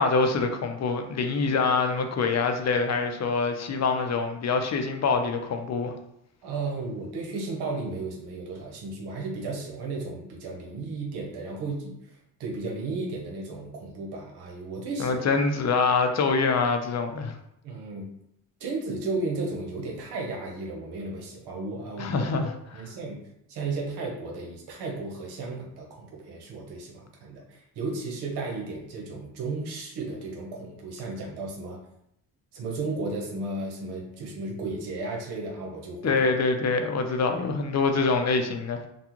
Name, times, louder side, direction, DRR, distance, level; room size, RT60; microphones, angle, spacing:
voice 1, 0.0-5.9 15.0-17.4 22.0-22.5 36.0-38.8, left 4 dB, 45° left, 5 dB, 0.6 m, -25 dB
voice 2, 6.4-15.2 17.6-18.1 18.6-22.5 22.7-23.2 23.5-31.8 32.5-36.1, right 3 dB, 85° right, -1 dB, 1.0 m, -34 dB
3.5 x 2.3 x 3.0 m, 0.77 s
cardioid pair, 75°, 38 cm